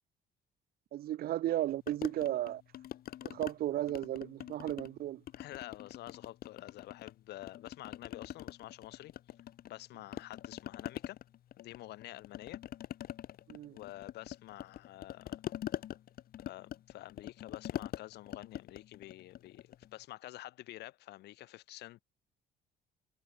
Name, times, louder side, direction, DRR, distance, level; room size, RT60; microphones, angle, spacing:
voice 1, 0.9-2.6 3.2-5.2 13.5-13.8, right 13 dB, 65° right, 1.1 m, -34 dB
sound 1, 1.9-3.5 3.9-5.0 5.3-7.1 7.4-9.8 10.1-19.9, left 12 dB, 60° left, 3.0 m, -44 dB
voice 2, 5.3-9.1 9.7-11.2 11.6-12.6 13.7-15.4 16.4-22.0, left 16 dB, 80° left, 4.4 m, -49 dB
cardioid pair, 110°, 17 cm